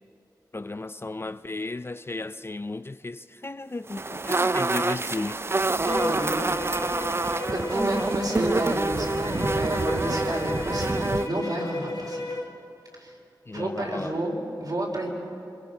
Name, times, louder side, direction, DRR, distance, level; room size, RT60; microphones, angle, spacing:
voice 1, 0.5-5.4 13.5-14.2, left 2 dB, 30° left, 0.4 m, -34 dB
sound 1, 3.9-11.3, right 3 dB, 30° right, 0.4 m, -27 dB
Bowed string instrument, 5.8-12.6, left 2 dB, 60° left, 2.3 m, -34 dB
voice 2, 5.8-6.4 7.1-7.2 7.5-12.2 13.0-13.1 13.5-15.1, right 1 dB, 55° right, 4.5 m, -30 dB
26.0 x 21.5 x 6.0 m
wide cardioid pair, 80°, 8 cm